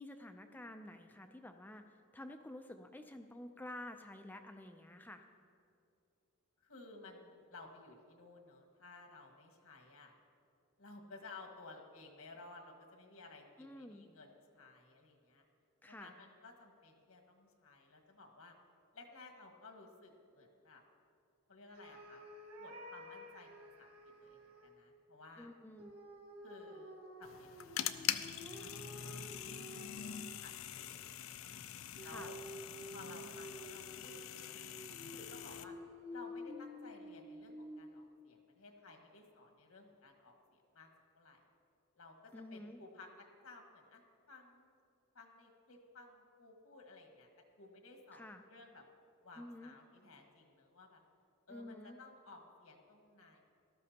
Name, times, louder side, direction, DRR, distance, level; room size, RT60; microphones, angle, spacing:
voice 1, 0.0-5.2 13.6-14.1 15.8-16.1 25.4-26.0 32.0-32.3 42.3-42.8 48.1-48.4 49.4-49.7 51.5-52.0, left 1 dB, 10° left, 6 dB, 0.4 m, -50 dB
voice 2, 6.6-10.1 10.8-15.4 15.9-18.5 18.9-20.8 21.5-22.2 22.6-23.9 24.2-25.5 26.4-31.1 32.0-32.4 32.9-34.8 35.1-35.7 36.1-40.9 41.1-41.4 41.9-44.0 44.3-44.7 45.1-47.3 47.6-48.8 49.2-51.0 51.5-53.4, left 3 dB, 90° left, 2 dB, 1.7 m, -56 dB
sound 1, 21.7-24.7 25.8-30.5 32.0-38.1, equal, 85° right, 1.9 m, -51 dB
sound 2, 27.2-35.6, left 10 dB, 70° left, 0.4 m, -44 dB
18.0 x 13.0 x 2.9 m, 2.5 s
head